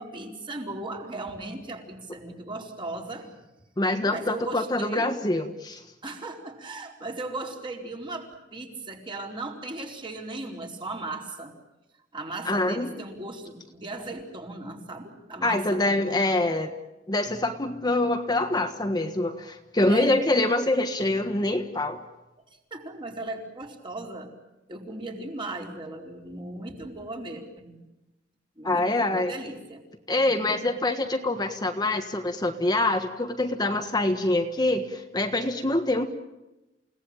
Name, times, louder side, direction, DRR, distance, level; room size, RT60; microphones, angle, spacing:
voice 1, 0.0-3.4 4.0-5.1 6.0-11.5 12.1-16.6 19.9-20.2 22.5-24.3 24.7-27.8 28.6-29.8 30.3-30.7, right 2 dB, 30° right, 1 dB, 4.5 m, -37 dB
voice 2, 3.8-5.8 12.4-12.9 15.4-16.7 17.1-22.0 28.6-29.3 30.1-36.1, left 2 dB, 25° left, 5 dB, 1.5 m, -25 dB
29.5 x 18.0 x 8.9 m, 1.0 s
head